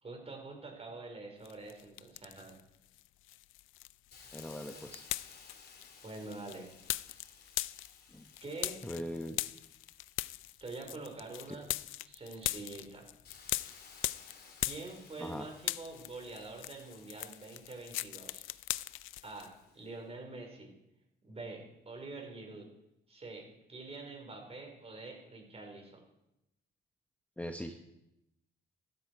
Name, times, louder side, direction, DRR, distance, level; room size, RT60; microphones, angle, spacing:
voice 1, 0.0-2.5 6.0-6.7 8.4-8.8 10.6-13.1 14.6-18.5 19.2-20.7 21.2-22.7 23.1-26.0, right 3 dB, 30° right, 2 dB, 4.9 m, -46 dB
sound 1, 1.5-2.6 2.9-15.3 15.6-19.5, left 16 dB, 85° left, 0.5 m, -40 dB
Hiss, 4.1-11.7 12.2-19.9, left 5 dB, 50° left, 3.2 m, -59 dB
voice 2, 4.3-5.0 8.1-8.2 8.8-9.4 11.5-11.6 15.2-15.5 27.4-27.8, equal, 5° left, 5 dB, 1.1 m, -40 dB
14.5 x 14.0 x 4.8 m, 0.89 s
cardioid pair, 90°, 20 cm